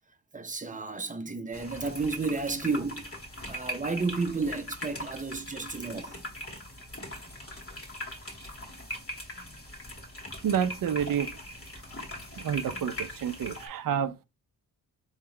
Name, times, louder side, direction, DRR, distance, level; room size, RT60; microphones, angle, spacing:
voice 1, 0.3-3.2 3.5-6.2, right 4 dB, 20° right, 0.8 m, -32 dB
sound 1, 1.5-13.7, left 1 dB, 35° left, 1.9 m, -40 dB
voice 2, 10.4-11.3 12.4-14.2, right 8 dB, 55° right, 0.6 m, -29 dB
3.6 x 3.2 x 4.4 m
cardioid pair, 55°, 40 cm